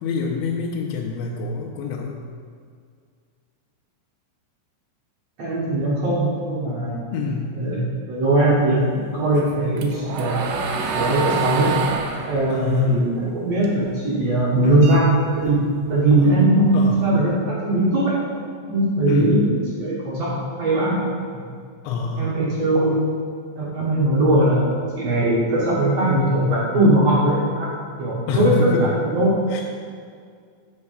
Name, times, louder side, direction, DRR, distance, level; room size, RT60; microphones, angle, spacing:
voice 1, 0.0-2.2 7.1-7.6 12.5-13.2 14.6-14.9 16.2-16.3 16.7-17.1 19.1-19.5 21.8-22.5 28.3-29.0 29.5-29.6, left 4 dB, 85° left, -3 dB, 2.9 m, -26 dB
voice 2, 5.4-7.0 7.6-8.9 9.1-10.7 10.9-11.7 12.3-15.1 15.3-15.6 15.9-18.1 18.7-20.3 20.6-21.0 22.2-23.0 23.6-27.7 28.0-29.3, right 1 dB, 60° right, -7 dB, 1.7 m, -20 dB
sound 1, 9.4-13.9 14.3-15.8, right 5 dB, 85° right, 3.2 m, -27 dB
9.8 x 4.7 x 6.9 m, 2.1 s
omnidirectional pair, 5.5 m